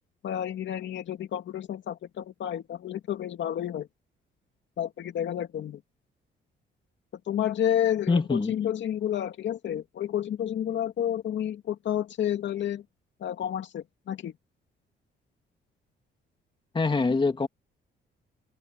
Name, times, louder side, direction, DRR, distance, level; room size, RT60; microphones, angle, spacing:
voice 1, 0.2-3.9 4.8-5.8 7.3-12.8 13.2-14.3, left 10 dB, 65° left, 2.4 m, -30 dB
voice 2, 8.1-8.5 16.7-17.5, left 4 dB, 25° left, 2.3 m, -24 dB
cardioid pair, 90°, 20 cm